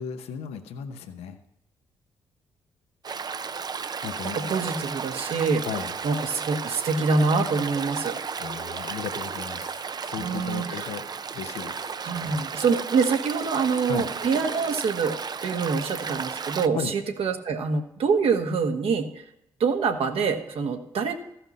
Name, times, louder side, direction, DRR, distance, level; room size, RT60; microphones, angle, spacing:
voice 1, 0.0-1.4 4.0-4.5 5.6-5.9 8.4-11.1 11.3-12.0 13.8-14.1 16.7-16.9, left 7 dB, 75° left, 7 dB, 0.9 m, -35 dB
Stream, 3.0-16.7, right 5 dB, 40° right, 0.5 m, -34 dB
voice 2, 4.3-5.6 6.0-8.2 10.2-10.9 12.0-19.1 19.6-21.1, right 5 dB, 65° right, 5 dB, 1.4 m, -25 dB
15.0 x 5.8 x 5.4 m, 0.81 s
hypercardioid pair, 45°, 11 cm